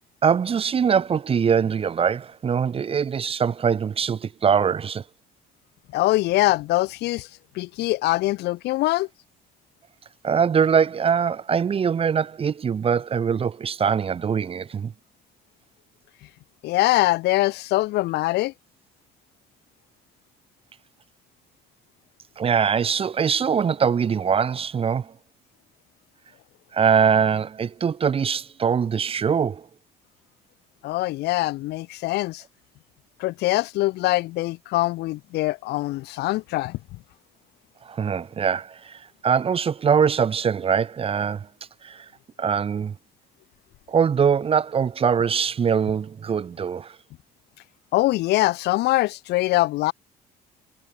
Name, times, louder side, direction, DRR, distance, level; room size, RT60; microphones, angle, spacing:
voice 1, 0.2-5.0 10.2-14.9 22.4-25.1 26.7-29.7 37.8-41.5 41.8-42.1 42.4-43.0 43.9-47.0, right 7 dB, 35° right, 1.0 m, -22 dB
voice 2, 5.9-7.3 7.5-9.1 16.6-18.5 30.8-32.4 33.2-36.8 47.9-49.9, left 18 dB, 80° left, 0.9 m, -23 dB
cardioid pair, 110°, 17 cm